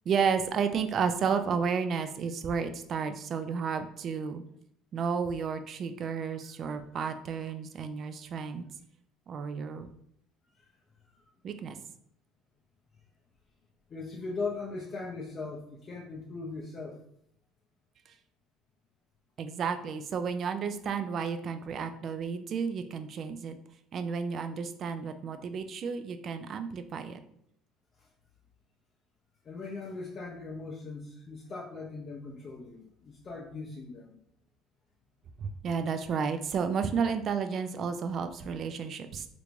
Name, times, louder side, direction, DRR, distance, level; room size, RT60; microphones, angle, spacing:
voice 1, 0.1-4.4 4.9-8.6 9.3-9.9 11.4-11.8 19.4-23.5 23.9-27.2 35.4-39.3, right 6 dB, 45° right, 9 dB, 0.3 m, -32 dB
voice 2, 13.9-17.0 28.0-28.1 29.4-34.2, left 3 dB, 35° left, -2 dB, 0.5 m, -39 dB
3.3 x 2.5 x 3.0 m, 0.69 s
cardioid pair, 110°, 0 cm